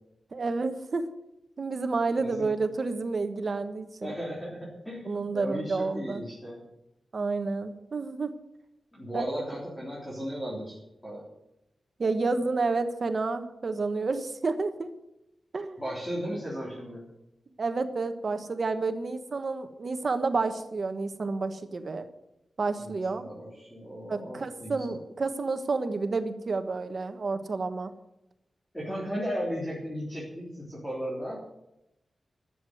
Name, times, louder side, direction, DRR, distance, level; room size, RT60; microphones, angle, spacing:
voice 1, 0.3-1.0 1.6-4.1 5.1-6.2 7.1-8.3 9.1-9.2 12.0-14.9 15.5-15.8 17.6-22.1 22.6-23.2 24.1-27.9, right 3 dB, 45° right, 8 dB, 1.3 m, -30 dB
voice 2, 2.2-2.5 4.0-6.6 8.9-10.8 11.0-11.3 15.8-17.0 22.8-24.9 28.7-31.4, equal, 10° left, -5 dB, 3.6 m, -36 dB
12.5 x 8.2 x 9.2 m, 0.86 s
wide cardioid pair, 135°, 0 cm